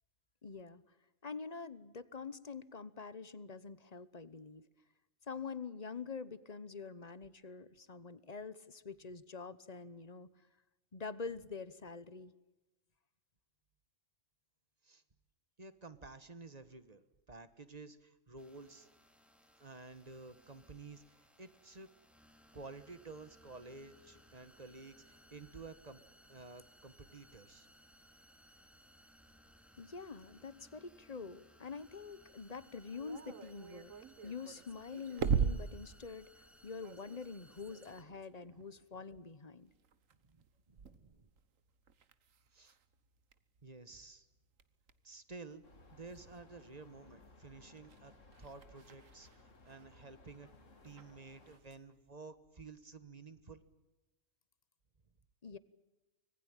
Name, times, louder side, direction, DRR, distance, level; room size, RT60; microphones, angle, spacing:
voice 1, 0.4-0.8 1.2-4.6 5.3-10.3 10.9-12.3 29.8-33.9 34.2-39.7 55.4-55.6, left 5 dB, 35° left, 16 dB, 1.0 m, -46 dB
voice 2, 15.6-17.0 17.3-18.9 19.6-21.9 22.5-26.0 26.3-27.7 40.2-41.3 42.5-42.8 43.6-44.3 45.0-45.6 45.9-48.1 48.4-50.5 50.8-53.6, right 3 dB, 30° right, 12 dB, 1.4 m, -52 dB
sound 1, 18.4-38.0, equal, ahead, 2.1 m, -64 dB
sound 2, 32.6-43.8 44.2-46.9 47.2-52.0, right 6 dB, 90° right, 1.6 m, -42 dB
sound 3, 45.6-51.6, left 3 dB, 75° left, 2.5 m, -61 dB
25.5 x 19.5 x 9.0 m, 1.1 s
omnidirectional pair, 1.3 m